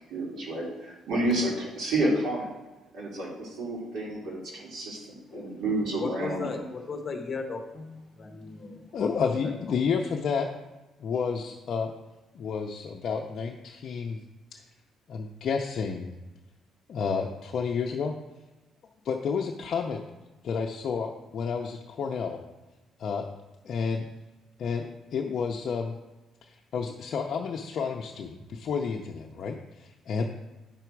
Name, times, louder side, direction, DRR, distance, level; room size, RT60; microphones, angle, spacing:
voice 1, 0.1-2.5 2.9-6.6, right 1 dB, 60° right, 2.8 m, -30 dB
voice 2, 6.0-9.5, left 4 dB, 25° left, 0.9 m, -36 dB
voice 3, 8.9-10.5 11.0-11.9 12.3-14.2 14.5-14.6 15.1-16.1 16.9-18.1 19.0-20.0 20.4-22.4 23.0-23.3 23.6-24.0 24.6-26.0 26.5-30.3, left 5 dB, 45° left, 0.6 m, -30 dB
9.0 x 6.0 x 4.6 m
cardioid pair, 170°, 0 cm